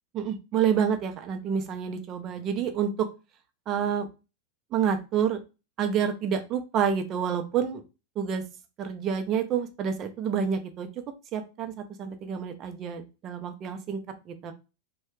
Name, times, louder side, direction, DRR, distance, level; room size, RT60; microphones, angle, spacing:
voice 1, 0.1-3.1 3.7-4.1 4.7-5.4 5.8-7.8 8.2-8.4 8.8-10.9 11.3-14.0 14.3-14.5, right 7 dB, 35° right, 7 dB, 0.5 m, -28 dB
3.1 x 2.2 x 3.1 m, 0.29 s
figure-of-eight pair, 90°, 0 cm